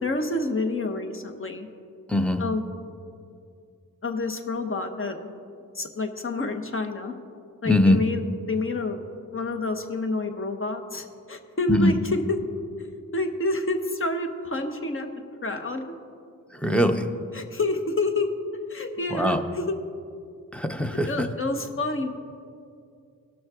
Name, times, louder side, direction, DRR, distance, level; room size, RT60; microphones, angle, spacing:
voice 1, 0.0-1.7 2.4-2.6 4.0-5.2 5.7-7.1 7.6-8.2 8.5-9.0 9.3-12.4 13.1-15.1 15.4-15.8 17.3-18.3 18.7-19.8 21.1-22.1, left 2 dB, 35° left, 5 dB, 1.1 m, -28 dB
voice 2, 2.1-2.4 7.6-8.0 11.7-11.9 16.5-17.1 19.1-19.4 20.5-21.3, left 1 dB, 5° left, 6 dB, 0.7 m, -22 dB
17.5 x 6.2 x 3.7 m, 2.4 s
cardioid pair, 55°, 35 cm